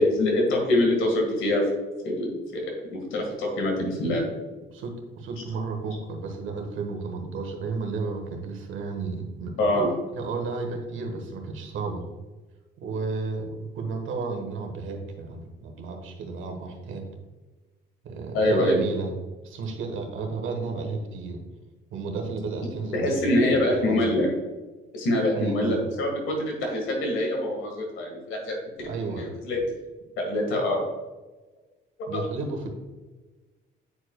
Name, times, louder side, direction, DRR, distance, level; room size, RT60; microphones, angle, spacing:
voice 1, 0.0-1.7 2.0-4.3 9.6-9.9 18.3-18.8 22.9-24.3 24.9-29.6 30.2-30.8 32.1-32.2, left 1 dB, 80° left, 0 dB, 1.8 m, -25 dB
voice 2, 4.7-9.8 10.1-12.1 12.8-17.1 18.0-19.1 19.4-21.4 21.9-24.1 25.3-25.8 28.8-29.2 32.1-32.7, right 4 dB, 80° right, 3 dB, 1.4 m, -32 dB
9.5 x 4.6 x 2.3 m, 1.2 s
cardioid pair, 90°, 20 cm